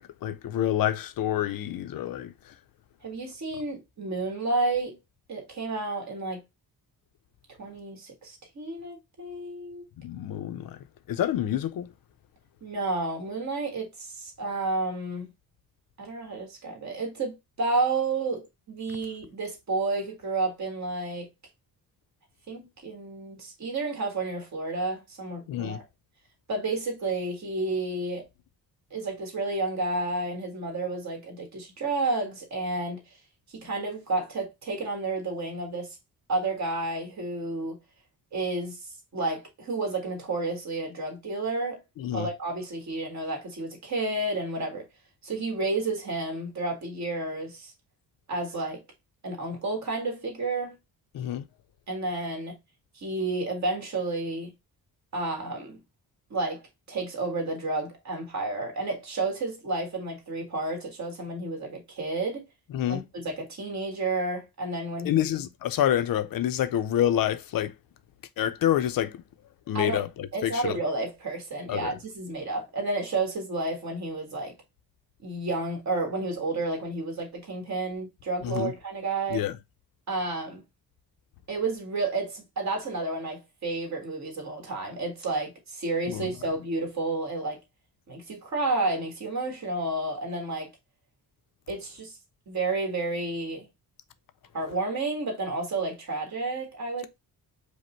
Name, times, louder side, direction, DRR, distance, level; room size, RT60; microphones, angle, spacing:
voice 1, 0.0-2.5 10.0-10.8 11.1-11.9 25.5-25.8 42.0-42.3 51.1-51.4 62.7-63.0 65.0-67.7 68.4-69.2 69.7-70.8 71.7-72.0 78.4-78.7 79.3-79.6 86.1-86.3, left 11 dB, 60° left, 0.5 m, -28 dB
voice 2, 3.0-5.0 5.3-6.4 7.6-9.8 12.6-15.3 16.0-21.3 22.5-25.8 26.5-28.2 28.9-33.0 33.5-36.0 36.3-37.8 38.3-41.8 42.1-44.9 45.2-47.7 48.3-48.8 49.2-50.8 51.9-52.6 52.9-54.5 55.1-55.8 56.3-56.6 56.9-62.4 62.9-65.3 69.7-70.0 70.3-74.5 75.2-79.4 80.1-80.6 81.5-87.6 88.1-90.7 91.7-92.2 92.5-93.7 94.5-97.1, right 2 dB, 45° right, 1.5 m, -31 dB
5.0 x 2.0 x 4.4 m
wide cardioid pair, 170°, 39 cm